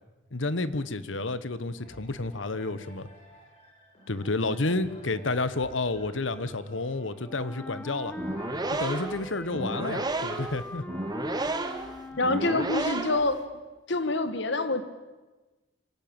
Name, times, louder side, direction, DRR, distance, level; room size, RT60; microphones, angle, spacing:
voice 1, 0.3-3.1 4.1-8.1 8.7-10.8 11.4-11.5, left 2 dB, 85° left, 15 dB, 1.2 m, -30 dB
sound 1, 1.8-11.6 12.2-12.3, right 1 dB, 35° left, 6.1 m, -51 dB
Wind instrument woodwind instrument, 7.3-13.1, left 1 dB, 10° left, 1.2 m, -42 dB
sound 2, 8.1-13.4, right 2 dB, 20° right, 1.8 m, -32 dB
voice 2, 12.2-13.4 13.9-14.8, left 2 dB, 65° left, 11 dB, 1.7 m, -26 dB
25.5 x 17.0 x 8.9 m, 1.2 s
head